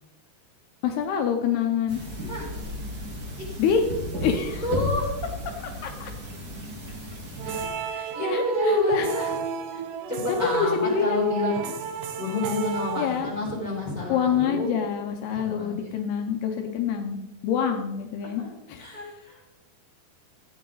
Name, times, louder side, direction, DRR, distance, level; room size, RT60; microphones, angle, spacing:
voice 1, 0.8-2.0 3.6-3.8 4.2-4.6 5.5-5.6 5.8-6.1 7.4-7.6 7.9-8.4 8.9-9.1 9.7-9.8 10.4-11.2 13.0-13.3 14.1-18.4 18.7-19.0, left 7 dB, 75° left, 3 dB, 2.7 m, -26 dB
sound 1, 1.9-7.7, left 1 dB, 50° right, 1.1 m, -34 dB
voice 2, 2.2-2.5 3.4-3.6 4.3-5.2 7.5-9.4 10.1-11.6 12.2-14.7 15.3-15.9 18.2-18.5 18.8-19.5, left 2 dB, 5° right, -5 dB, 4.7 m, -29 dB
sound 2, 7.4-13.7, right 6 dB, 70° right, 2.1 m, -33 dB
15.0 x 9.7 x 4.0 m, 0.98 s
omnidirectional pair, 4.8 m